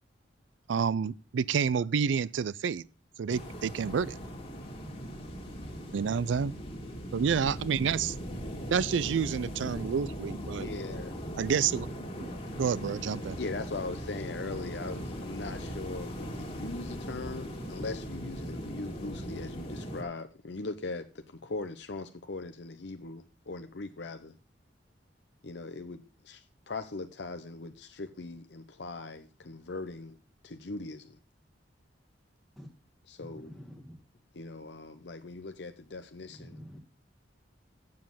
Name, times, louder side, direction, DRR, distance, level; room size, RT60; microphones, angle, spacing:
voice 1, 0.7-2.8 3.2-4.2 5.9-6.5 7.1-8.2 8.7-10.7 11.4-11.9 12.6-13.4, right 6 dB, 85° right, 0.4 m, -29 dB
sound 1, 3.3-20.0, equal, 30° left, 2.0 m, -39 dB
voice 2, 10.5-11.1 13.4-24.3 25.4-30.1 30.4-31.2 33.1-33.5 34.3-36.6, left 3 dB, 65° left, 0.8 m, -40 dB
voice 3, 33.2-33.9 36.4-36.8, equal, ahead, 1.4 m, -47 dB
7.9 x 7.4 x 7.0 m
head